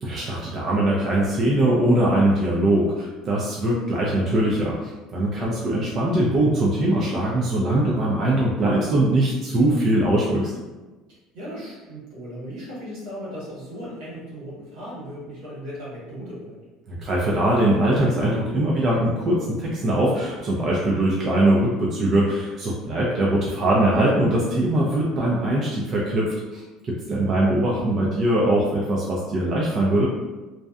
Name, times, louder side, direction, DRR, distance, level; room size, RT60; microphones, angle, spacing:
voice 1, 0.0-10.5 16.9-30.1, right 1 dB, 40° right, -4 dB, 0.4 m, -21 dB
voice 2, 5.3-5.8 11.1-16.6 22.8-23.4 27.1-27.4, equal, 80° right, -7 dB, 1.5 m, -37 dB
2.6 x 2.1 x 2.4 m, 1.2 s
cardioid pair, 130°, 0 cm